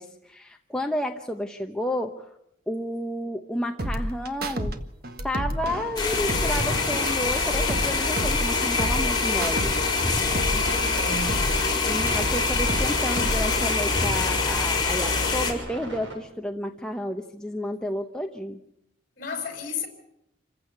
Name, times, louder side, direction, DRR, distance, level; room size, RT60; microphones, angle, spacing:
voice 1, 0.0-2.3 2.7-4.8 5.2-9.7 11.8-18.6, left 1 dB, 5° left, 0.9 m, -31 dB
sound 1, 3.8-4.7 5.0-9.7 10.0-12.9 13.2-13.8, right 1 dB, 50° right, 1.6 m, -30 dB
sound 2, 6.0-15.5, left 4 dB, 20° left, 4.9 m, -25 dB
voice 2, 10.5-11.5 19.2-19.9, left 4 dB, 45° left, 5.1 m, -33 dB
sound 3, 12.2-16.1, right 1 dB, 80° right, 7.7 m, -38 dB
27.5 x 15.5 x 8.4 m
head